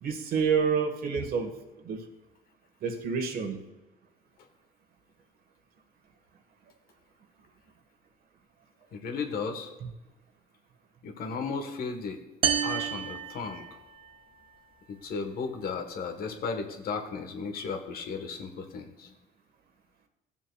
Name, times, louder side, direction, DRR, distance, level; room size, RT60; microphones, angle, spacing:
voice 1, 0.0-1.5 1.8-2.0 2.8-3.6, right 6 dB, 60° right, 6 dB, 1.3 m, -28 dB
voice 2, 8.9-9.7 11.0-12.2 12.6-13.8 14.9-19.1, left 5 dB, 65° left, 5 dB, 1.2 m, -35 dB
sound 1, 12.4-14.2, right 8 dB, 30° right, 0.5 m, -30 dB
15.0 x 7.2 x 2.3 m, 1.1 s
cardioid pair, 110°, 17 cm